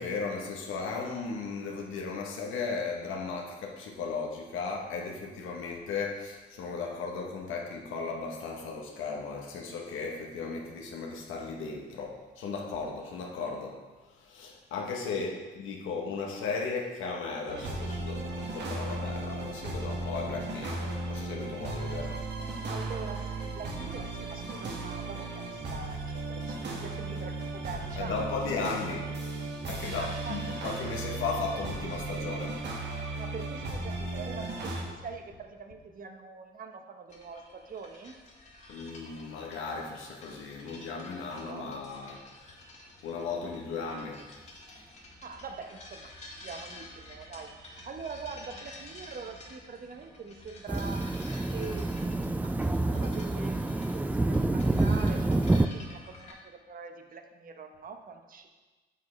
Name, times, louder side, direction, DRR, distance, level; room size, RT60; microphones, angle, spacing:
voice 1, 0.0-13.8 14.1-22.2 28.0-29.1 29.7-32.6 38.7-42.5 43.0-44.2, left 4 dB, 85° left, 0 dB, 1.0 m, -36 dB
sound 1, 17.5-34.8, right 2 dB, 60° right, 1.6 m, -36 dB
voice 2, 22.6-28.4 28.7-28.8 29.9-30.6 33.1-38.2 41.3-41.8 45.2-51.1 51.5-58.5, right 5 dB, 45° right, 5 dB, 0.9 m, -44 dB
sound 2, 37.1-56.3, left 1 dB, 35° left, 1.7 m, -50 dB
sound 3, 50.7-55.7, right 2 dB, 10° right, 0.3 m, -27 dB
9.3 x 6.4 x 3.2 m, 1.3 s
cardioid pair, 90°, 20 cm